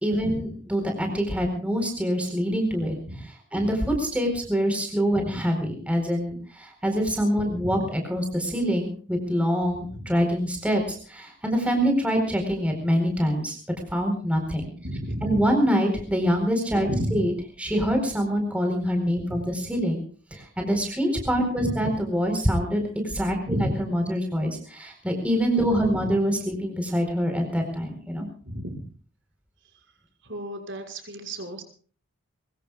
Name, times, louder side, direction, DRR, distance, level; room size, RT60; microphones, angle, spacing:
voice 1, 0.0-3.0 3.5-13.6 13.9-14.7 15.2-17.3 17.6-20.0 20.3-28.3, equal, 5° right, 3 dB, 4.4 m, -25 dB
voice 2, 14.8-15.4 16.8-17.2 19.3-19.4 21.5-21.7 23.5-23.8 25.7-26.0 28.4-28.8 30.2-31.6, equal, 60° right, 4 dB, 6.1 m, -32 dB
23.5 x 23.0 x 2.4 m, 0.43 s
head